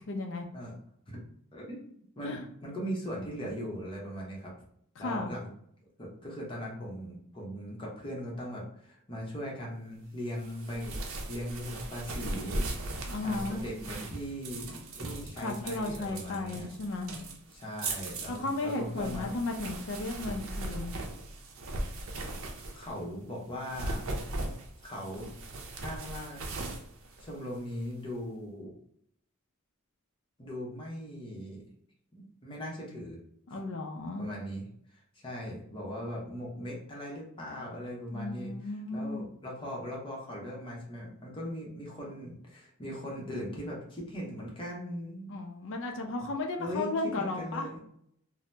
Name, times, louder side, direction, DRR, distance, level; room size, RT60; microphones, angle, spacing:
voice 1, 0.1-0.5 2.2-2.5 5.0-5.3 13.1-13.7 15.4-17.1 18.3-21.0 33.5-34.3 38.1-39.3 45.3-47.7, left 2 dB, 65° left, 3 dB, 0.4 m, -34 dB
voice 2, 1.5-4.5 5.0-5.5 6.0-11.0 11.3-12.9 13.2-16.7 17.5-19.4 22.7-24.0 24.8-25.3 25.8-26.4 27.2-28.7 30.4-31.6 32.1-33.2 33.5-33.6 34.2-45.3 46.6-47.8, equal, 25° left, -3 dB, 0.8 m, -39 dB
sound 1, 10.4-23.0 23.5-27.9, right 2 dB, 70° right, 0.5 m, -39 dB
2.7 x 2.0 x 3.2 m, 0.69 s
head